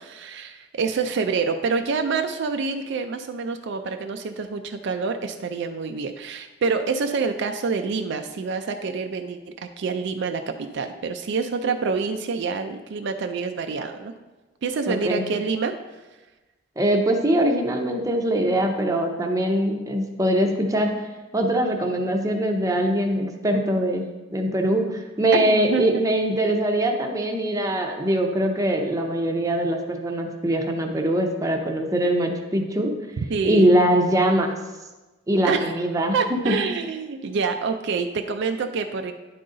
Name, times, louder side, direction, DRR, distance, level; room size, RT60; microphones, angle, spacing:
voice 1, 0.0-14.1 14.6-15.7 25.3-26.0 33.3-33.7 35.4-35.7 36.1-39.1, right 4 dB, 60° right, 6 dB, 0.4 m, -27 dB
voice 2, 14.9-15.2 16.8-20.9 21.3-24.0 24.3-32.9 33.4-34.5 35.3-36.2 36.4-36.5, right 1 dB, 15° right, 2 dB, 0.7 m, -22 dB
10.0 x 3.9 x 3.8 m, 1.2 s
head